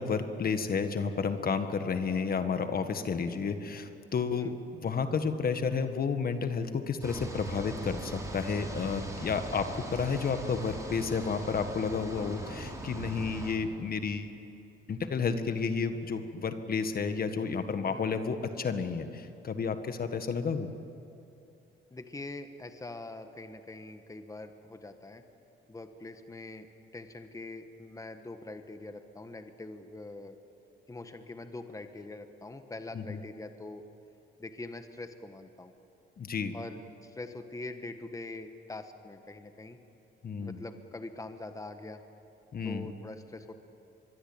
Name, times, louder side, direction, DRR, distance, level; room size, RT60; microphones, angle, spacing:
voice 1, 0.0-4.5 4.8-14.3 14.9-20.7 32.9-33.2 36.2-36.5 40.2-40.6 42.5-42.9, left 5 dB, 50° left, 8 dB, 1.7 m, -31 dB
sound 1, 7.0-13.5, right 2 dB, 15° right, 5.1 m, -40 dB
voice 2, 21.9-25.2 25.7-26.7 26.9-30.4 30.9-33.8 34.4-35.7 36.5-39.8 40.4-42.0 42.6-43.5, left 2 dB, 15° left, 7 dB, 1.5 m, -43 dB
24.5 x 22.5 x 8.8 m, 2.7 s
cardioid pair, 90°, 20 cm